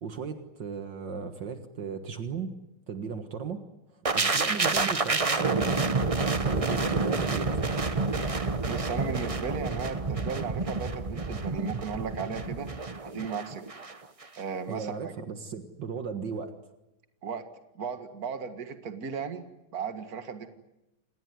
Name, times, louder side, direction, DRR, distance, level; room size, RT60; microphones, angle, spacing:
voice 1, 0.0-2.5 2.9-3.6 3.9-6.0 6.5-7.6 14.7-16.6, right 6 dB, 70° right, 8 dB, 2.2 m, -36 dB
sound 1, 4.0-13.9 14.2-14.4, right 3 dB, 25° right, 0.9 m, -29 dB
voice 2, 8.6-12.7 13.0-13.6 14.4-15.1 17.2-17.4 17.7-19.4 19.7-20.5, right 6 dB, 50° right, 8 dB, 2.3 m, -36 dB
28.0 x 20.0 x 9.5 m, 0.93 s
omnidirectional pair, 2.1 m